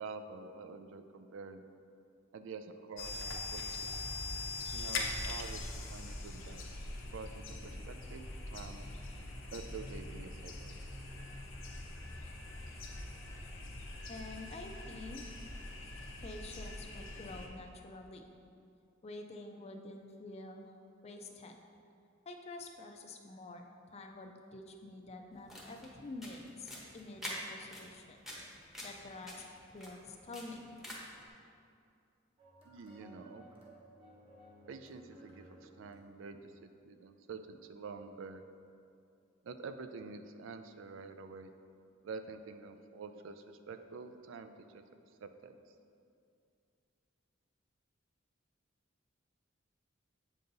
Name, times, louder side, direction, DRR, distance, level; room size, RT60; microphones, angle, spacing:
voice 1, 0.0-1.6 2.3-3.2 3.5-4.0 4.7-6.6 7.1-8.8 9.5-10.7 32.6-33.5 34.7-36.5 36.8-38.4 39.4-41.5 42.0-44.8 45.2-45.6, right 4 dB, 70° right, 9 dB, 0.4 m, -47 dB
sound 1, 3.0-17.5, left 2 dB, 75° left, 0.7 m, -42 dB
voice 2, 14.1-15.2 16.2-18.2 19.0-20.7 21.0-21.6 22.3-28.2 28.8-30.8, left 2 dB, 30° left, 4 dB, 0.4 m, -48 dB
sound 2, 25.3-31.2, equal, ahead, 0.9 m, -48 dB
sound 3, 32.4-36.8, right 1 dB, 30° right, 1.0 m, -58 dB
7.7 x 5.3 x 2.6 m, 2.4 s
head